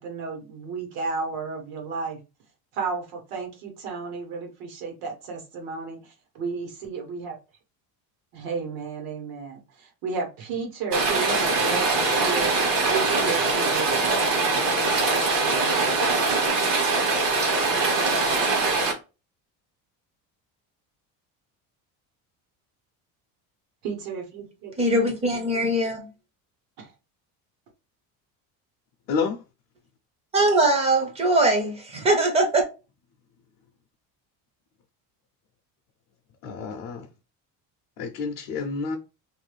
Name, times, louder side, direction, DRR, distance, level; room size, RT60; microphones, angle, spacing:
voice 1, 0.0-2.2 2.7-7.3 8.3-12.5 12.8-16.1 23.8-24.7 26.8-26.9, right 4 dB, 80° right, 1.2 m, -33 dB
Rain, 10.9-18.9, right 3 dB, 60° right, 1.3 m, -22 dB
voice 2, 24.8-26.1 30.3-32.6, right 2 dB, 15° right, 0.5 m, -21 dB
voice 3, 36.4-37.0 38.0-39.0, left 5 dB, 55° left, 0.5 m, -28 dB
2.6 x 2.3 x 3.2 m
cardioid pair, 180°, 36 cm